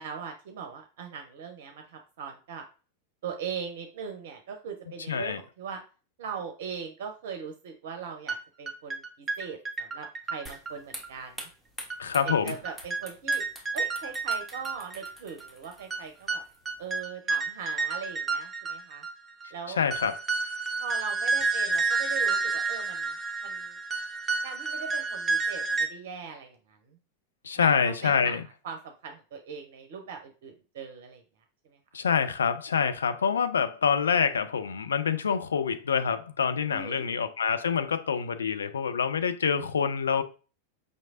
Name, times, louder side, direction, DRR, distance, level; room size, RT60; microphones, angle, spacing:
voice 1, 0.0-2.6 3.2-5.8 6.2-11.5 12.2-13.4 13.7-16.4 16.8-19.0 19.5-19.8 20.8-23.2 23.4-23.8 24.4-27.0 27.5-31.2 31.6-31.8 36.7-37.0, right 6 dB, 55° right, 0.6 m, -40 dB
voice 2, 5.1-5.4 12.0-12.6 19.7-20.2 27.4-28.4 31.9-40.2, left 6 dB, 70° left, 0.4 m, -26 dB
sound 1, 8.3-8.4 8.7-11.1 11.4-11.5 11.9-12.0 12.3-12.4 12.7-15.1 15.4-15.5 15.9-19.1 19.4-19.5 19.9-25.9, right 4 dB, 15° right, 0.8 m, -30 dB
sound 2, 10.5-17.0, equal, 5° left, 1.1 m, -47 dB
5.2 x 3.1 x 2.5 m
figure-of-eight pair, 90°, 0 cm